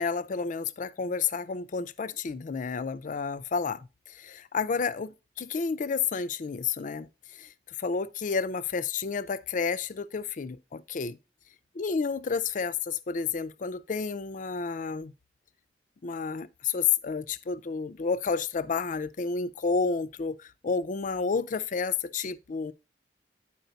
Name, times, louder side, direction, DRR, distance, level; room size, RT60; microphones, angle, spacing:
voice 1, 0.0-7.5 7.8-11.2 11.8-15.1 16.0-22.7, left 5 dB, 50° left, 0.4 m, -30 dB
9.1 x 4.9 x 3.9 m
head